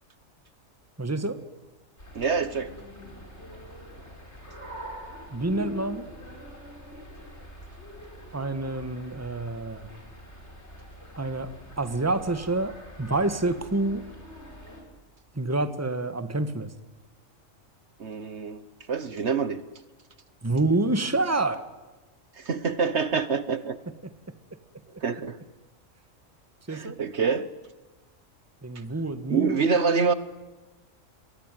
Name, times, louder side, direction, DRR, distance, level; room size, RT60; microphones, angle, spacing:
voice 1, 1.0-1.4 5.3-6.0 8.3-9.8 11.2-11.5 11.8-14.0 15.3-16.7 20.4-21.6 26.7-27.0 28.6-29.6, right 2 dB, 10° right, 10 dB, 1.4 m, -27 dB
sound 1, 2.0-14.8, equal, 60° left, 6.4 m, -44 dB
voice 2, 2.1-2.7 18.0-18.6 18.9-19.6 22.4-23.8 25.0-25.4 26.7-27.5 29.3-30.1, right 5 dB, 60° right, 13 dB, 1.4 m, -26 dB
28.5 x 23.0 x 9.2 m, 1.2 s
omnidirectional pair, 1.3 m